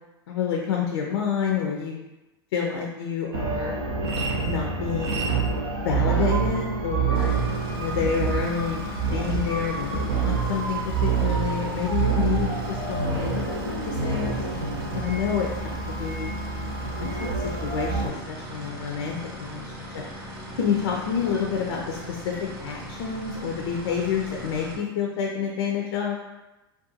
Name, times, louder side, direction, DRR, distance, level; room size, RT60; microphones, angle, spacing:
voice 1, 0.3-2.0 2.5-3.8 4.1-5.3 5.8-7.3 7.7-14.4 14.9-16.7 17.1-20.0 20.6-22.3 22.6-26.2, left 7 dB, 75° left, 0 dB, 0.4 m, -29 dB
sound 1, 3.3-18.1, right 5 dB, 85° right, 0.5 m, -27 dB
sound 2, 7.1-24.8, right 1 dB, 50° right, 0.7 m, -39 dB
2.4 x 2.2 x 2.7 m, 1.0 s
hypercardioid pair, 105°, 13 cm